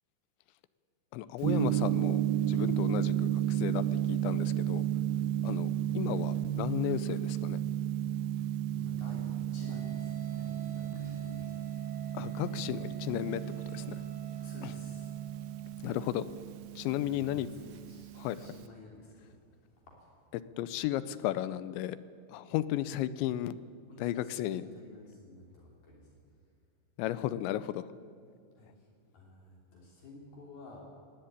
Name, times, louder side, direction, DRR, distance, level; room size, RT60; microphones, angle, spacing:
voice 1, 1.1-2.2 2.5-4.9 5.4-5.7 5.9-7.6 12.1-14.0 14.6-14.7 15.8-16.3 16.8-17.5 18.2-18.5 20.6-22.0 22.3-23.6 24.0-24.7 27.0-27.9, left 13 dB, 80° left, 15 dB, 2.8 m, -34 dB
Gong, 1.4-18.7, right 11 dB, 75° right, 2.3 m, -33 dB
voice 2, 8.7-11.7 14.4-15.1 17.1-20.1 23.9-26.0 28.6-28.9 29.1-30.8, left 2 dB, 55° left, -2 dB, 5.0 m, -52 dB
sound 1, 9.6-16.5, right 5 dB, 50° right, 5.3 m, -52 dB
20.5 x 16.0 x 9.6 m, 2.2 s
omnidirectional pair, 5.4 m